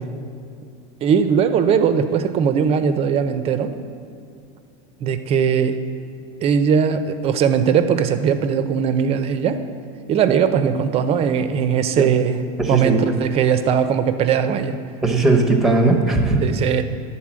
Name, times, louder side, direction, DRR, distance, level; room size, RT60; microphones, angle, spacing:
voice 1, 1.0-3.7 5.0-5.8 6.4-9.6 10.1-12.4 12.7-14.8 16.4-16.8, right 7 dB, 35° right, 9 dB, 0.6 m, -19 dB
voice 2, 12.6-13.0 15.0-16.4, right 2 dB, ahead, 4 dB, 0.9 m, -18 dB
11.0 x 4.1 x 7.4 m, 2.5 s
supercardioid pair, 140°, 18 cm